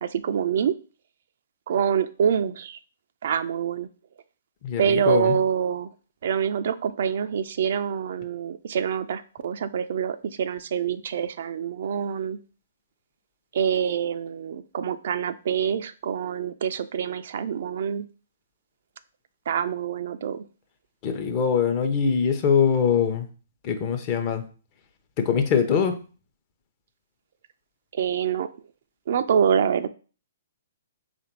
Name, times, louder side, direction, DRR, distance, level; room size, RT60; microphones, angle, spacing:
voice 1, 0.0-0.8 1.7-2.8 3.2-3.9 4.8-5.9 6.2-12.4 13.5-18.1 19.5-20.4 27.9-28.5 29.1-29.9, right 8 dB, 60° right, 11 dB, 0.3 m, -26 dB
voice 2, 4.6-5.4 21.0-23.3 23.6-24.4 25.2-26.0, left 7 dB, 35° left, 6 dB, 0.7 m, -23 dB
3.3 x 2.5 x 4.5 m, 0.37 s
hypercardioid pair, 130°, 0 cm